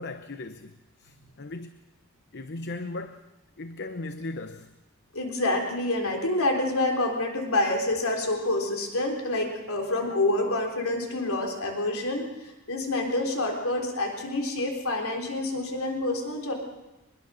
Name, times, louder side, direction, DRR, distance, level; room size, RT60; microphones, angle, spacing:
voice 1, 0.0-1.8 2.3-3.3 3.6-4.7, left 2 dB, 50° left, 0.9 m, -37 dB
voice 2, 5.1-16.5, left 2 dB, 70° left, 3.8 m, -27 dB
24.0 x 21.5 x 6.4 m
head